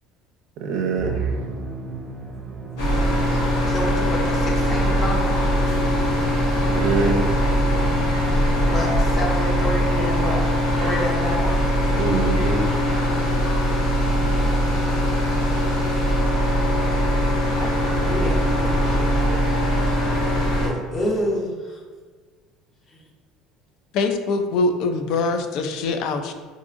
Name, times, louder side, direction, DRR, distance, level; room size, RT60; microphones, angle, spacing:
voice 1, 0.6-1.3 6.7-7.3 12.0-12.7, right 4 dB, 55° right, 2 dB, 0.5 m, -24 dB
Musical instrument, 1.0-9.5, right 4 dB, 10° right, 0.7 m, -34 dB
sound 1, 2.8-20.7, equal, 90° left, 1.0 m, -21 dB
voice 2, 3.7-5.3 8.6-10.5 10.8-11.6 17.6-19.2 19.5-19.9 20.6-21.8 22.9-23.0, left 1 dB, 25° left, -1 dB, 0.8 m, -29 dB
voice 3, 23.9-26.3, left 3 dB, 60° left, 7 dB, 0.4 m, -23 dB
4.6 x 2.5 x 2.5 m, 1.5 s
cardioid pair, 140°, 0 cm